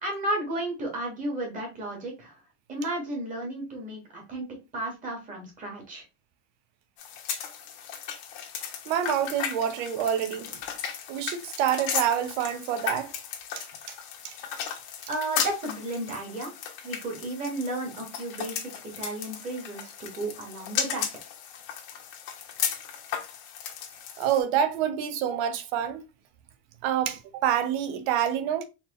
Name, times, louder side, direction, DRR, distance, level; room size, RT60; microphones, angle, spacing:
voice 1, 0.0-2.4 2.7-4.4 4.7-6.0 15.1-16.5 16.8-18.7 19.0-21.1, right 1 dB, 20° right, 1.4 m, -33 dB
sound 1, 7.0-24.4, left 8 dB, 70° left, 1.1 m, -35 dB
voice 2, 8.9-10.6 11.1-13.1 13.6-14.0 14.2-14.3 24.2-26.0 26.8-28.6, right 9 dB, 65° right, 0.8 m, -27 dB
4.2 x 3.0 x 3.0 m
cardioid pair, 175°, 35 cm